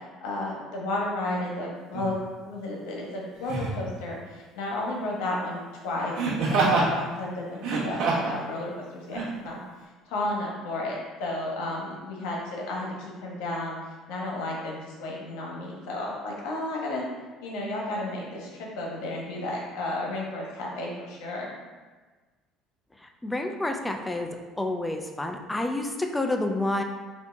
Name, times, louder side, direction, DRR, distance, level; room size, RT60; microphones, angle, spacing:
voice 1, 0.2-2.1 2.4-6.1 6.4-9.6 10.1-13.8 14.1-17.0 17.4-21.5, left 2 dB, 90° left, -3 dB, 1.1 m, -33 dB
Laughter, 1.9-2.1 3.4-3.8 6.1-6.9 7.5-8.4 9.1-9.3, right 3 dB, 70° right, 1.2 m, -25 dB
voice 2, 23.2-24.3 24.6-26.8, left 2 dB, 10° left, 4 dB, 0.3 m, -28 dB
4.2 x 2.8 x 3.4 m, 1.3 s
cardioid pair, 140°, 0 cm